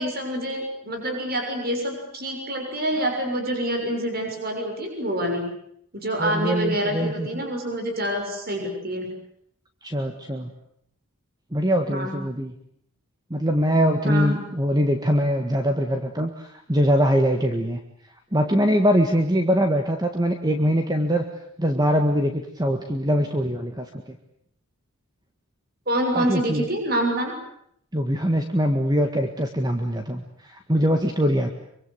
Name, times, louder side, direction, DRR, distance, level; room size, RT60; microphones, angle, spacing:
voice 1, 0.0-5.5 5.9-9.1 11.9-12.2 14.0-14.4 25.9-27.3, right 1 dB, 45° right, 3 dB, 6.5 m, -26 dB
voice 2, 6.2-7.4 9.8-10.5 11.5-12.5 13.3-17.8 18.3-21.2 21.6-24.2 26.1-26.7 27.9-31.5, equal, 20° right, 5 dB, 1.7 m, -23 dB
25.5 x 24.5 x 8.2 m, 0.70 s
head